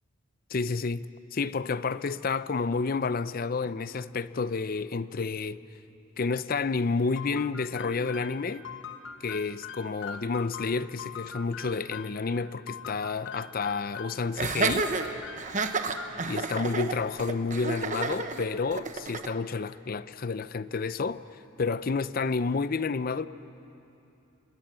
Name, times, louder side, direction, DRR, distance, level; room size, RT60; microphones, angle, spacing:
voice 1, 0.5-1.0 1.3-5.6 6.2-8.7 9.2-14.9 16.3-21.2 21.6-23.3, left 4 dB, 45° left, 0.5 m, -30 dB
sound 1, 7.2-12.2 12.7-14.3 14.6-16.3, left 6 dB, 60° left, 1.1 m, -42 dB
Laughter, 14.4-19.3, right 4 dB, 35° right, 1.0 m, -30 dB
26.5 x 20.5 x 7.7 m
head